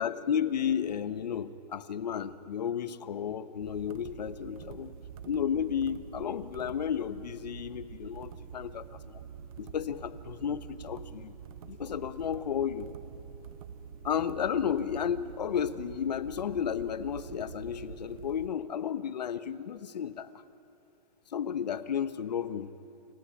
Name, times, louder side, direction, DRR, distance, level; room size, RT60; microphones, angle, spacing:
voice 1, 0.0-4.9 5.2-9.2 9.6-11.3 11.7-12.9 14.0-20.3 21.3-22.7, left 8 dB, 80° left, 13 dB, 1.1 m, -33 dB
sound 1, 3.6-18.5, right 7 dB, 60° right, 1.2 m, -46 dB
29.0 x 14.0 x 9.7 m, 2.8 s
hypercardioid pair, 135°, 21 cm